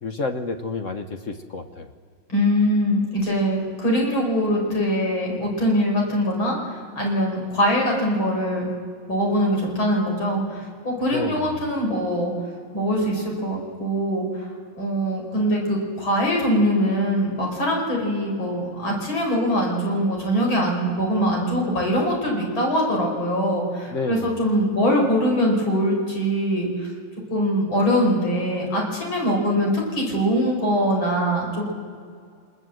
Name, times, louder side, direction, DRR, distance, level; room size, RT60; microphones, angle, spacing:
voice 1, 0.0-1.9 11.1-11.6 23.9-24.4, left 3 dB, 50° left, 7 dB, 1.1 m, -29 dB
voice 2, 2.3-8.7 9.1-12.3 12.7-14.5 14.8-26.9 27.3-31.6, equal, 70° left, -1 dB, 5.7 m, -22 dB
25.0 x 20.5 x 7.8 m, 2.2 s
omnidirectional pair, 2.2 m